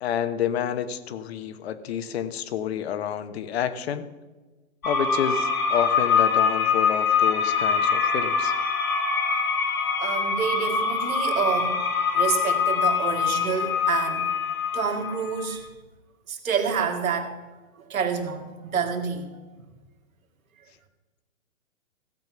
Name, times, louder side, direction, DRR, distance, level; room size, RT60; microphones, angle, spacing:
voice 1, 0.0-4.1 4.8-8.5, left 9 dB, 50° left, 12 dB, 1.1 m, -29 dB
sound 1, 4.8-15.5, left 6 dB, 85° left, 2.4 m, -24 dB
voice 2, 10.0-11.8 12.1-14.3 14.7-15.7 16.3-17.4 17.9-19.3, right 6 dB, 75° right, 4 dB, 2.3 m, -28 dB
16.0 x 7.6 x 6.0 m, 1.2 s
hypercardioid pair, 145°, 41 cm